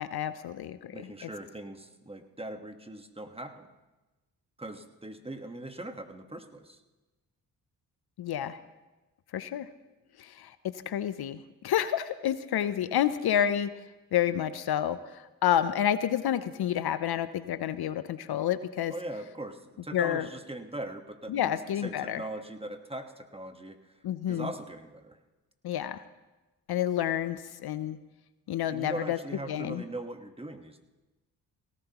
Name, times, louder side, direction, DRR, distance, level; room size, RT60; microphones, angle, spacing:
voice 1, 0.0-1.3 8.2-8.6 9.3-9.7 10.2-13.7 14.1-18.9 19.9-20.3 21.3-22.2 24.0-24.5 25.6-26.0 26.7-28.0 28.5-29.2 29.5-29.8, left 10 dB, 70° left, 13 dB, 0.6 m, -29 dB
voice 2, 0.9-3.7 4.6-6.8 18.9-21.6 21.8-25.2 28.7-30.8, right 1 dB, 15° right, 6 dB, 1.3 m, -40 dB
18.0 x 14.5 x 3.0 m, 1.1 s
supercardioid pair, 50°, 40 cm